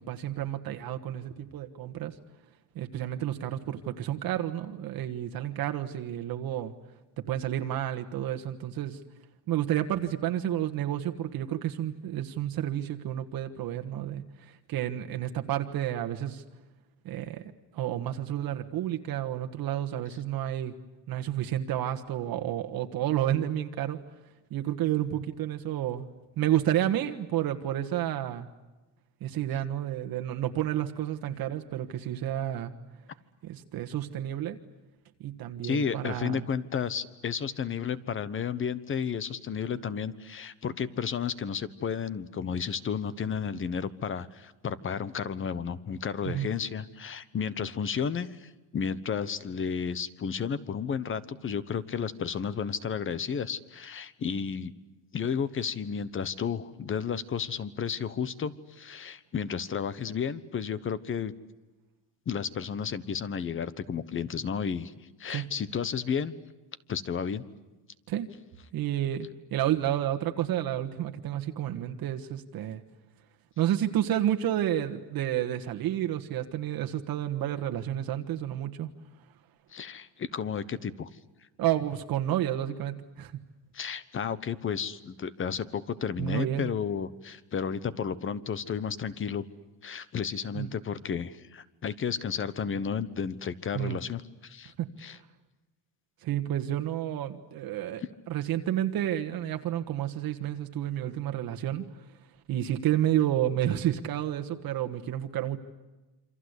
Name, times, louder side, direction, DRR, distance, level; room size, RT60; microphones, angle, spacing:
voice 1, 0.0-2.1 2.7-6.7 7.2-9.0 9.5-16.4 17.0-17.4 17.7-20.7 21.1-24.0 24.5-26.1 26.4-28.5 29.2-32.7 33.4-34.6 35.2-36.4 46.2-46.5 65.3-65.5 68.1-68.3 68.7-72.8 73.6-78.9 81.6-83.4 86.2-86.7 90.5-90.7 93.7-94.0 94.8-94.9 96.2-101.8 102.5-105.6, right 12 dB, 50° right, 6 dB, 1.6 m, -30 dB
voice 2, 35.6-54.7 55.1-61.3 62.3-64.9 65.2-66.3 66.9-67.4 79.7-81.1 83.7-89.4 89.8-94.7 95.0-95.2, left 7 dB, 25° left, 16 dB, 1.1 m, -32 dB
28.0 x 25.5 x 8.2 m, 1.1 s
cardioid pair, 155°, 44 cm